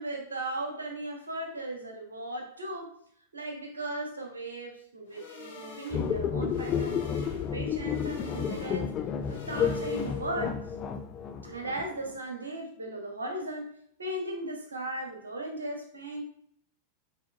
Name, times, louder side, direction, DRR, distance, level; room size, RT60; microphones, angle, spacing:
voice 1, 0.0-3.0 3.3-8.9 9.3-10.6 11.4-13.7 14.0-16.2, right 1 dB, 75° right, 3 dB, 0.8 m, -37 dB
sound 1, 5.1-10.5, left 3 dB, 65° left, 1.0 m, -46 dB
sound 2, 5.9-12.1, left 7 dB, 30° left, 0.3 m, -31 dB
5.8 x 2.8 x 2.4 m, 0.63 s
figure-of-eight pair, 90°, 0 cm